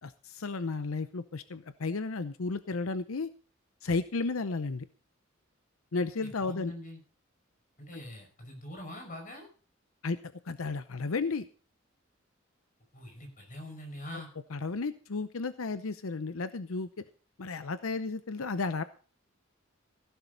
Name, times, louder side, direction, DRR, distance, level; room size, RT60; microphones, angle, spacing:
voice 1, 0.0-3.3 3.8-4.9 5.9-6.7 7.9-8.0 10.0-10.2 10.4-11.4 14.5-16.9 17.4-18.8, left 3 dB, 90° left, 13 dB, 0.7 m, -33 dB
voice 2, 6.2-7.0 7.8-9.5 12.9-14.3, left 1 dB, 40° left, 4 dB, 5.6 m, -44 dB
16.0 x 11.5 x 4.0 m, 0.39 s
head